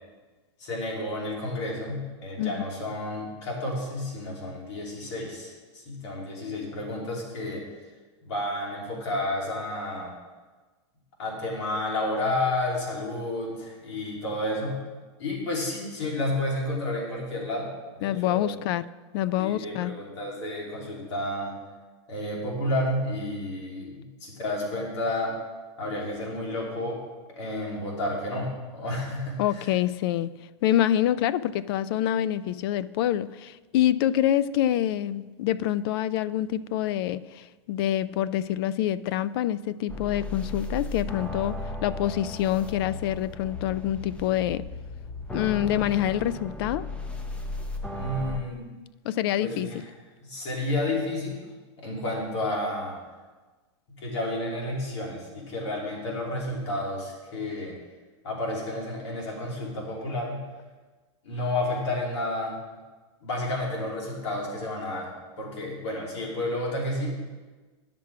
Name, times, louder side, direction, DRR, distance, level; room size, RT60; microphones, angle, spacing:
voice 1, 0.6-7.6 8.2-10.1 11.2-14.8 15.2-17.7 17.9-18.6 19.4-21.5 22.1-25.3 25.8-27.0 27.4-29.6 47.9-48.6 49.4-49.8 50.2-51.4 51.8-53.0 53.9-57.8 58.2-60.4 61.2-62.6 63.2-65.1 65.4-67.2, left 1 dB, 80° left, -2 dB, 3.1 m, -31 dB
voice 2, 18.0-18.8 19.1-19.9 29.4-30.3 30.6-41.6 41.8-44.6 45.3-46.9 49.0-49.8, left 12 dB, 55° left, 17 dB, 0.4 m, -26 dB
sound 1, 39.9-48.4, left 2 dB, 10° left, 0.7 m, -35 dB
10.5 x 6.0 x 4.8 m, 1.3 s
supercardioid pair, 140°, 15 cm